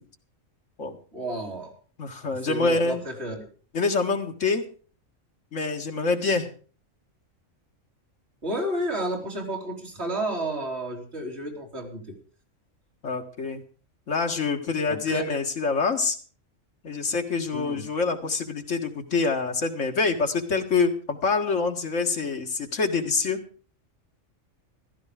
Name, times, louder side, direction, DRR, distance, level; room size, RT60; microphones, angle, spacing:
voice 1, 1.1-1.7 2.2-3.5 8.4-12.1 14.9-15.4 17.5-17.8, right 1 dB, 55° right, 0 dB, 3.8 m, -31 dB
voice 2, 2.0-3.0 3.7-4.7 5.5-6.5 13.0-13.6 14.1-16.2 16.8-23.4, left 4 dB, 70° left, 3 dB, 2.1 m, -26 dB
15.0 x 12.5 x 5.0 m, 0.40 s
omnidirectional pair, 1.4 m